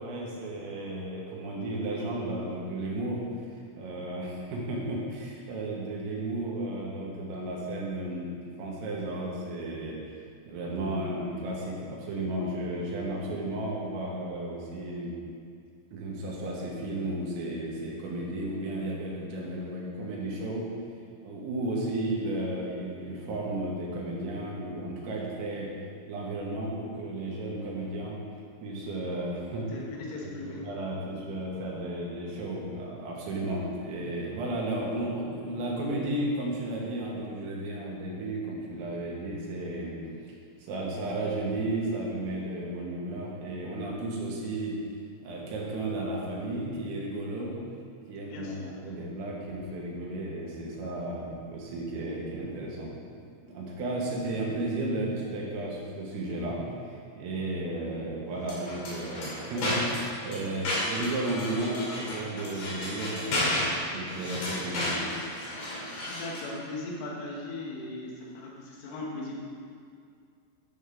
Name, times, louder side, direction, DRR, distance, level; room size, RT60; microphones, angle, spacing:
voice 1, 0.0-3.2 3.8-10.0 10.5-15.1 15.9-20.7 21.2-25.7 26.1-28.2 28.6-29.7 30.4-40.3 40.6-44.8 45.2-47.6 48.1-52.9 53.4-63.6 63.9-65.1, right 1 dB, 85° right, -4 dB, 3.9 m, -33 dB
voice 2, 29.7-30.7 31.0-31.1 48.3-48.7 66.0-69.4, left 2 dB, 75° left, -2 dB, 3.6 m, -38 dB
sound 1, 58.4-66.5, left 1 dB, 50° left, 3.3 m, -33 dB
11.0 x 6.6 x 3.6 m, 2.3 s
omnidirectional pair, 5.9 m